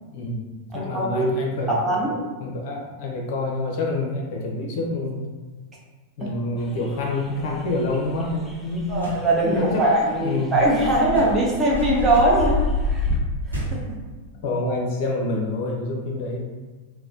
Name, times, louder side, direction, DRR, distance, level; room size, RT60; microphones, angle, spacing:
voice 1, 0.1-0.5 0.7-1.8 2.4-5.3 6.2-9.1 9.4-10.5 14.4-16.5, left 2 dB, 50° left, -1 dB, 0.6 m, -27 dB
voice 2, 0.7-1.3 1.7-2.2 6.2-6.3 8.9-12.6 13.5-14.0, right 1 dB, 15° right, -4 dB, 0.9 m, -21 dB
sound 1, 6.6-13.2, left 2 dB, 10° left, 0.6 m, -28 dB
sound 2, 8.8-9.3 11.1-12.5 13.5-14.0, right 2 dB, 85° right, 0.8 m, -34 dB
4.1 x 2.1 x 2.8 m, 1.3 s
figure-of-eight pair, 90°, 0 cm